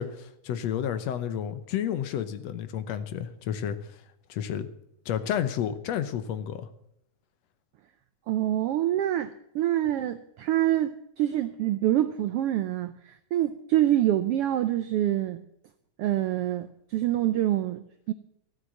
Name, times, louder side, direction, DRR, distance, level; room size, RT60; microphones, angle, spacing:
voice 1, 0.0-4.0 4.3-4.7 5.1-6.7, left 9 dB, 70° left, 12 dB, 1.9 m, -31 dB
voice 2, 8.3-15.4 16.0-18.1, right 13 dB, 80° right, 11 dB, 1.3 m, -26 dB
14.0 x 8.1 x 7.5 m, 0.75 s
omnidirectional pair, 3.3 m